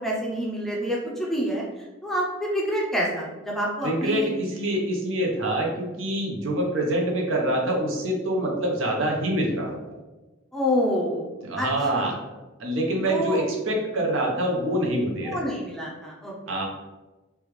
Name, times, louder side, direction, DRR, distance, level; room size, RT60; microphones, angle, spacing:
voice 1, 0.0-4.3 10.5-11.7 11.9-12.2 13.0-13.4 15.2-16.6, equal, ahead, -4 dB, 0.5 m, -28 dB
voice 2, 3.8-9.8 11.4-12.1 12.6-15.5 16.5-16.6, right 1 dB, 70° right, -1 dB, 0.7 m, -25 dB
3.3 x 2.3 x 3.1 m, 1.1 s
head